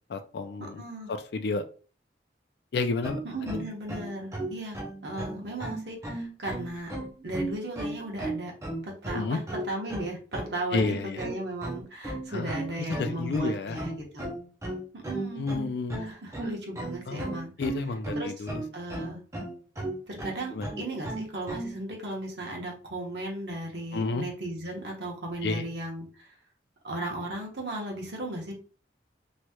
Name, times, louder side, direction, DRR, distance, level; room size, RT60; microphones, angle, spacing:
voice 1, 0.1-0.8 1.1-1.6 2.7-3.5 9.1-9.4 10.7-11.2 12.3-13.8 15.3-16.1 17.1-17.3 17.6-18.6 20.5-20.7 23.9-24.2 25.4-25.6, left 3 dB, 65° left, 8 dB, 0.4 m, -31 dB
voice 2, 0.6-1.1 3.2-6.9 7.2-8.5 9.0-14.3 14.9-15.5 16.0-17.5 18.1-18.5 18.7-19.2 20.1-26.3 26.8-28.5, right 1 dB, 75° right, 0 dB, 1.1 m, -36 dB
sound 1, 3.0-21.8, right 2 dB, 15° right, 0.6 m, -35 dB
3.1 x 2.9 x 2.2 m, 0.37 s
head